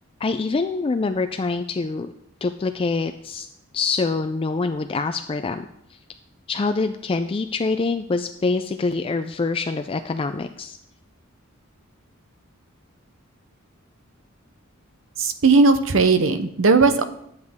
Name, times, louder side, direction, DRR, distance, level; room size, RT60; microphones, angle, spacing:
voice 1, 0.2-2.1 2.4-3.5 3.7-5.7 6.5-10.8, left 3 dB, 25° left, 8 dB, 0.4 m, -25 dB
voice 2, 15.2-17.0, right 4 dB, 70° right, 10 dB, 0.8 m, -17 dB
11.5 x 8.0 x 3.6 m, 0.74 s
head